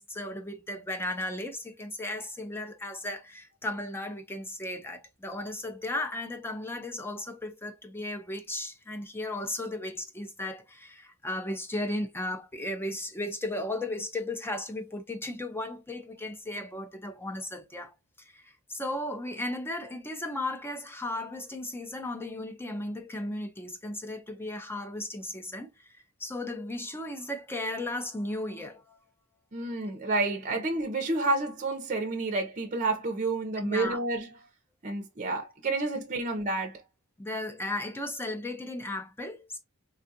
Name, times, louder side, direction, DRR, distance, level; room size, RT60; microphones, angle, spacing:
voice 1, 0.0-17.9 18.3-25.9 26.2-29.0 30.5-30.6 33.6-34.0 37.2-39.6, left 1 dB, 10° left, 0.5 m, -35 dB
voice 2, 29.5-34.3 34.8-36.8, right 2 dB, 35° right, 0.7 m, -30 dB
3.5 x 2.4 x 2.7 m
head